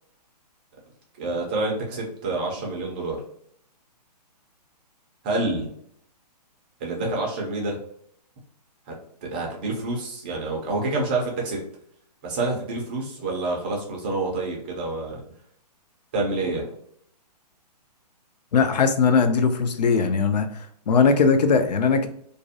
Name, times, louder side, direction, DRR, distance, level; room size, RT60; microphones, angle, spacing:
voice 1, 1.2-3.2 5.2-5.7 6.8-7.8 8.9-9.0 9.2-11.6 12.2-15.2 16.1-16.7, right 2 dB, 15° right, -1 dB, 0.3 m, -27 dB
voice 2, 18.5-20.5 20.9-22.1, left 5 dB, 75° left, 8 dB, 0.5 m, -19 dB
2.5 x 2.0 x 2.6 m, 0.67 s
hypercardioid pair, 160°, 21 cm